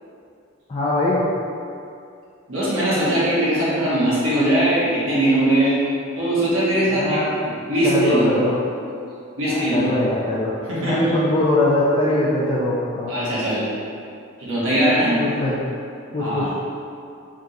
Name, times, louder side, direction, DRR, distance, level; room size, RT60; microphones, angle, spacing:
voice 1, 0.7-1.2 6.9-7.3 7.8-8.5 9.4-10.5 10.8-13.1 15.2-15.6 16.1-16.5, left 1 dB, 25° left, -6 dB, 0.4 m, -21 dB
voice 2, 2.5-5.8 6.2-7.2 7.7-8.3 9.4-9.8 10.7-11.1 13.1-13.6 14.4-15.2 16.2-16.5, right 1 dB, 85° right, -9 dB, 1.3 m, -20 dB
3.6 x 2.9 x 3.8 m, 2.5 s
head